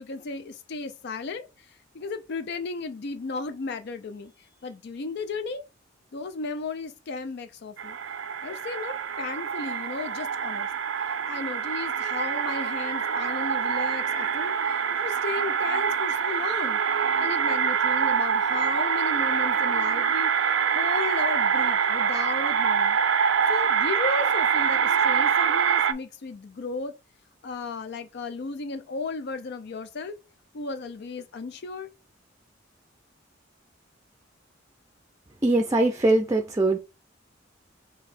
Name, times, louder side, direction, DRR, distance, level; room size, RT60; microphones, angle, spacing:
voice 1, 0.0-4.3 4.6-5.6 6.1-8.0 8.4-10.7 11.1-16.8 17.1-20.3 20.7-23.0 23.5-26.9 27.4-30.2 30.5-31.9, left 4 dB, 60° left, 0.4 m, -35 dB
sound 1, 7.8-25.9, right 7 dB, 70° right, 0.5 m, -25 dB
voice 2, 35.4-36.8, right 2 dB, 15° right, 0.5 m, -21 dB
4.0 x 2.8 x 4.1 m
head